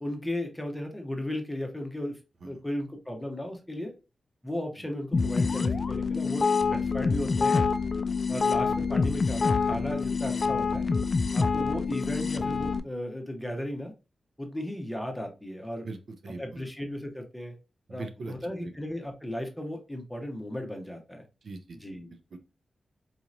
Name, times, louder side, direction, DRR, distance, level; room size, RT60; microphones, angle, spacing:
voice 1, 0.0-2.2 2.4-3.9 4.4-7.7 8.3-10.9 11.3-13.9 14.4-15.9 16.4-17.5 17.9-21.2 21.7-22.1, left 1 dB, 5° left, 3 dB, 0.9 m, -35 dB
sound 1, 5.1-12.8, left 4 dB, 45° left, 0.3 m, -26 dB
voice 2, 15.8-16.7 17.9-18.3 18.6-18.7 21.4-21.8 22.1-22.4, right 3 dB, 70° right, 7 dB, 0.5 m, -41 dB
4.1 x 2.9 x 2.5 m, 0.30 s
cardioid pair, 75°, 0 cm